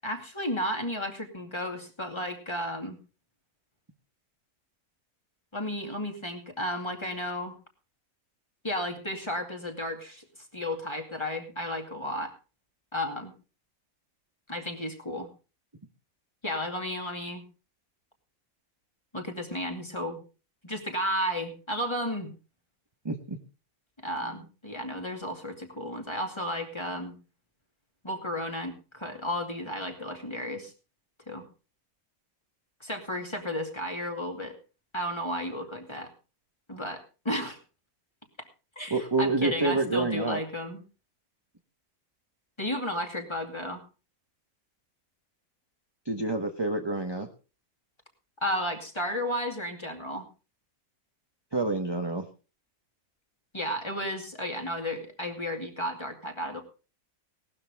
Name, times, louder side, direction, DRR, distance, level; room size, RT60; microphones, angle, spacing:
voice 1, 0.0-3.0 5.5-7.5 8.6-10.2 10.5-12.3 12.9-13.3 14.5-15.3 16.4-17.4 19.1-20.2 20.6-22.3 24.0-27.1 28.0-30.7 31.3-31.5 32.8-34.5 34.9-36.1 36.7-37.6 38.8-40.8 42.6-43.8 48.4-50.3 53.5-56.6, equal, 20° left, 3 dB, 2.4 m, -33 dB
voice 2, 23.0-23.4 24.2-24.4 38.9-40.4 46.0-47.3 51.5-52.3, right 3 dB, 20° right, 5 dB, 1.1 m, -28 dB
18.0 x 12.5 x 3.5 m, 0.34 s
omnidirectional pair, 1.6 m